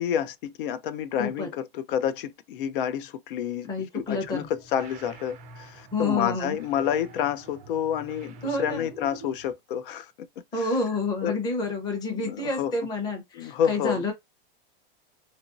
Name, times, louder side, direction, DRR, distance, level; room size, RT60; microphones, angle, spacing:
voice 1, 0.0-3.7 3.9-10.1 11.2-11.4 12.2-12.7 13.4-14.0, left 9 dB, 65° left, 0.5 m, -29 dB
voice 2, 3.7-4.5 5.9-6.6 8.4-8.9 10.5-14.1, left 3 dB, 15° left, 0.7 m, -29 dB
sound 1, 4.0-9.5, right 3 dB, 25° right, 0.4 m, -47 dB
3.0 x 2.5 x 2.5 m
supercardioid pair, 160°, 29 cm